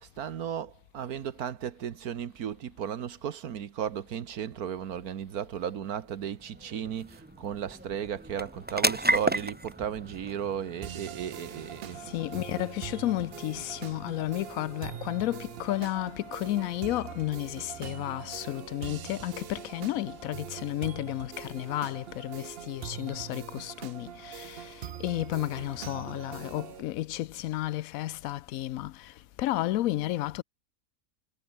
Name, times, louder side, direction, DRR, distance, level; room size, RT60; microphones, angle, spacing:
voice 1, 0.0-12.0, right 9 dB, 80° right, 1.6 m, -35 dB
sound 1, 5.4-20.2, right 1 dB, 10° right, 0.7 m, -37 dB
sound 2, 10.8-26.8, right 10 dB, 55° right, 0.7 m, -43 dB
voice 2, 12.0-30.4, left 15 dB, 70° left, 1.0 m, -32 dB
omnidirectional pair, 1.6 m